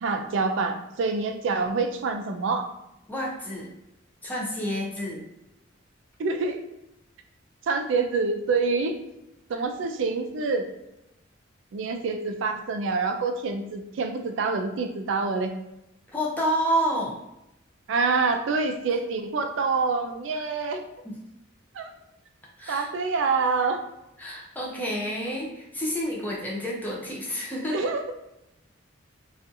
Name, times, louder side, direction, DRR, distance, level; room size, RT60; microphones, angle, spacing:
voice 1, 0.0-2.7 6.2-6.6 7.7-8.9 9.5-10.7 11.7-15.5 17.9-20.8 21.7-21.9 22.7-23.8 27.7-28.1, right 4 dB, 70° right, 6 dB, 0.3 m, -26 dB
voice 2, 3.1-3.7 4.2-5.2 9.5-9.6 16.1-17.2 20.3-20.4 21.0-21.1 22.6-22.9 24.2-27.9, equal, 10° left, -4 dB, 0.5 m, -29 dB
2.6 x 2.4 x 2.5 m, 0.89 s
head